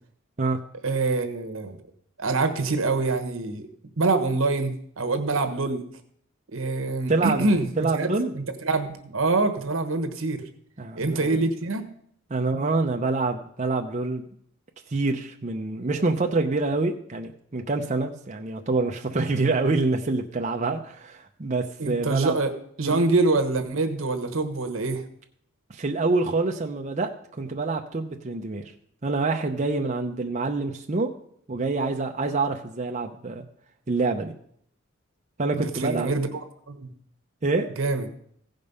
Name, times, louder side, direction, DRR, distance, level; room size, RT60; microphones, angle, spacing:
voice 1, 0.8-1.8 2.2-3.7 4.0-5.8 6.5-10.4 11.0-11.8 21.8-22.5 22.8-25.0 35.5-36.9 37.8-38.1, right 3 dB, 80° right, 9 dB, 1.2 m, -25 dB
voice 2, 7.1-7.5 7.8-8.3 10.8-11.4 12.3-14.2 14.9-22.4 22.8-23.0 25.7-27.1 27.4-28.7 29.0-31.1 31.5-33.5 33.9-34.3 35.4-36.1 37.4-37.7, right 3 dB, 35° right, 3 dB, 0.6 m, -26 dB
15.5 x 5.3 x 5.4 m, 0.67 s
head